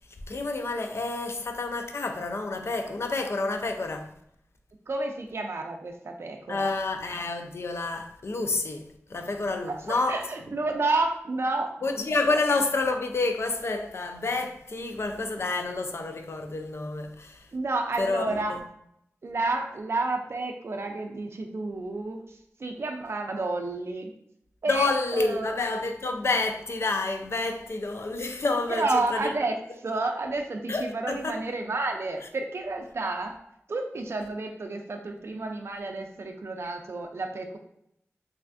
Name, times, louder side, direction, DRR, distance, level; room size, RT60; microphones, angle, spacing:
voice 1, 0.3-4.1 6.5-10.2 11.8-17.5 18.0-18.6 24.7-29.3 30.7-31.4, left 3 dB, 55° left, 0.4 m, -29 dB
voice 2, 4.9-6.7 9.6-11.7 12.3-12.4 17.5-18.5 19.2-24.1 24.6-25.5 28.7-33.4 33.7-37.6, right 2 dB, 55° right, 0.4 m, -30 dB
3.2 x 2.4 x 2.5 m
cardioid pair, 55°, 5 cm